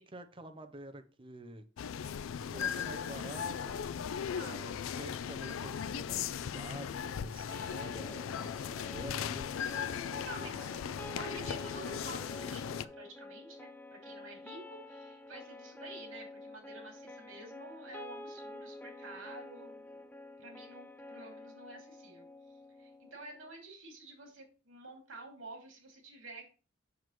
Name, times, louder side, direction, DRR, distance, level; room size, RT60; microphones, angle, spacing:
voice 1, 0.1-1.6 2.4-3.8 4.4-9.5 10.2-10.7, right 2 dB, 25° right, 9 dB, 0.7 m, -49 dB
sound 1, 1.8-12.9, left 8 dB, 80° left, 0.4 m, -38 dB
voice 2, 4.2-4.8 9.7-10.6 11.1-20.1 20.4-22.2 22.8-26.6, right 2 dB, 75° right, 1 dB, 2.8 m, -50 dB
sound 2, 7.5-23.5, left 2 dB, 10° left, 0.4 m, -49 dB
7.2 x 6.0 x 3.1 m, 0.34 s
head